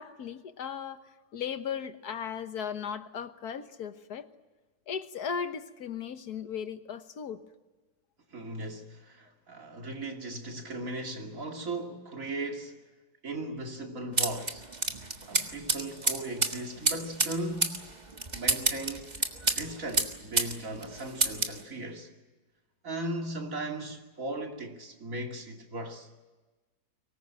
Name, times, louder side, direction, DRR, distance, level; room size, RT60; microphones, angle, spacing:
voice 1, 0.0-4.3 4.9-7.4, left 7 dB, 70° left, 1.7 m, -37 dB
voice 2, 8.3-12.8 13.2-14.6 15.3-17.9 18.3-19.1 19.6-22.1 22.8-26.1, right 2 dB, 55° right, 3.0 m, -37 dB
sound 1, 14.2-20.6 20.8-21.6, right 3 dB, 25° right, 1.6 m, -29 dB
24.0 x 19.5 x 9.1 m
omnidirectional pair, 1.7 m